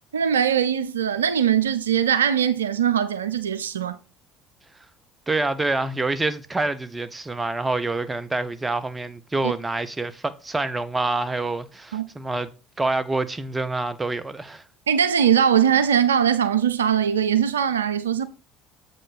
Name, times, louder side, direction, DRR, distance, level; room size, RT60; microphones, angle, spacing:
voice 1, 0.1-4.0 9.4-9.5 11.9-12.0 14.9-18.3, right 8 dB, 85° right, 0.4 m, -21 dB
voice 2, 5.3-12.5 12.8-14.6, right 2 dB, 20° right, 0.9 m, -26 dB
7.5 x 5.3 x 4.1 m
hypercardioid pair, 65°, 0 cm